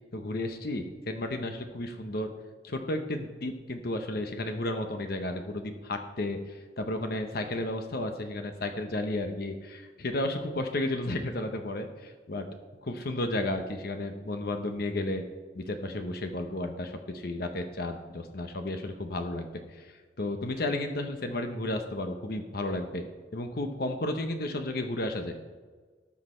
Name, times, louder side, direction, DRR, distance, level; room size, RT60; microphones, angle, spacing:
voice 1, 0.1-2.3 2.6-12.5 12.8-15.2 15.5-23.1 23.3-25.4, left 1 dB, 60° left, 6 dB, 0.9 m, -33 dB
18.0 x 6.4 x 4.4 m, 1.4 s
head